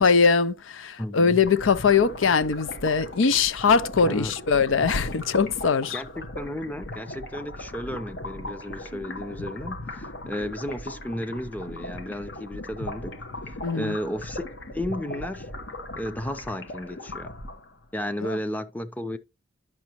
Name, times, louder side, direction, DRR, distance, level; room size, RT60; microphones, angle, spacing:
voice 1, 0.0-6.0 13.6-13.9 18.2-18.4, left 5 dB, 80° left, 0.5 m, -21 dB
voice 2, 1.0-1.4 4.0-4.3 5.9-13.2 13.4-14.4 14.7-15.5 16.0-17.3 17.9-19.2, left 1 dB, 10° left, 0.6 m, -33 dB
sound 1, 1.4-17.8, left 1 dB, 60° left, 1.1 m, -38 dB
10.5 x 6.0 x 2.9 m
head